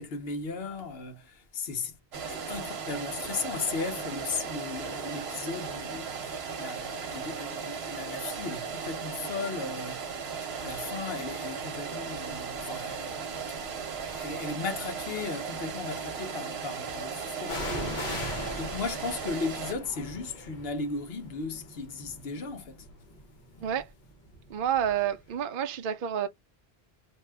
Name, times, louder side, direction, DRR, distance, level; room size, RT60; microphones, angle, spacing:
voice 1, 0.0-1.9 2.3-22.9, left 4 dB, 70° left, 1.0 m, -36 dB
sound 1, 2.1-19.7, right 6 dB, 85° right, 1.0 m, -37 dB
sound 2, 12.6-12.8 13.6-14.5 17.4-25.1 25.3-25.4, left 1 dB, 50° left, 1.1 m, -40 dB
voice 2, 24.5-26.3, right 9 dB, 65° right, 0.7 m, -29 dB
2.7 x 2.3 x 3.2 m
omnidirectional pair, 1.0 m